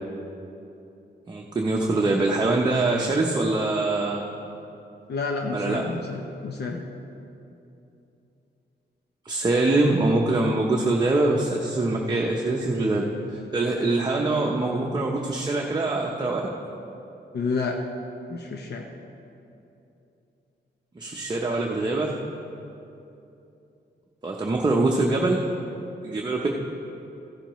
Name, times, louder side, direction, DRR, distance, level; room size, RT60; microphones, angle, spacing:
voice 1, 1.3-4.2 5.5-5.8 9.3-13.1 13.5-16.4 21.0-22.1 24.2-25.4 26.0-26.5, right 2 dB, 25° right, -1 dB, 0.7 m, -23 dB
voice 2, 5.1-6.8 17.3-17.8 18.3-18.9, left 4 dB, 65° left, 2 dB, 0.8 m, -29 dB
14.5 x 11.5 x 3.1 m, 2.8 s
wide cardioid pair, 145°, 18 cm